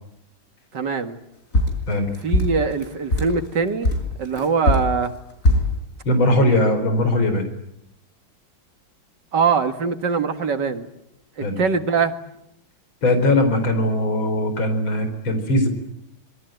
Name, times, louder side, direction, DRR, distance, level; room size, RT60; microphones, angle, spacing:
voice 1, 0.7-1.2 2.2-5.1 9.3-10.9 11.6-12.1, right 5 dB, 60° right, 2.3 m, -22 dB
sound 1, 1.5-3.4 3.8-5.8, left 1 dB, 40° left, 5.5 m, -20 dB
voice 2, 6.0-7.5 11.4-11.6 13.0-15.7, left 1 dB, 75° left, 5.1 m, -20 dB
26.0 x 23.0 x 9.1 m
omnidirectional pair, 2.2 m